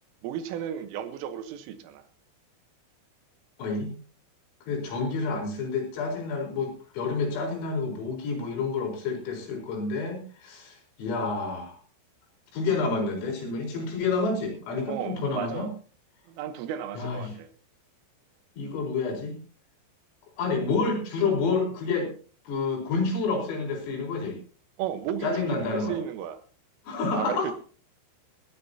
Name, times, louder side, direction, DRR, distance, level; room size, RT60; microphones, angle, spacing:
voice 1, 0.2-2.0 14.9-15.7 16.3-17.5 24.8-26.4 27.1-27.5, right 9 dB, 80° right, 3.7 m, -34 dB
voice 2, 3.6-3.9 4.7-11.8 12.5-15.7 17.0-17.3 18.6-19.4 20.4-22.1 22.5-24.4 25.2-26.0 26.9-27.5, left 4 dB, 90° left, 7.2 m, -29 dB
19.5 x 16.0 x 2.8 m
omnidirectional pair, 5.8 m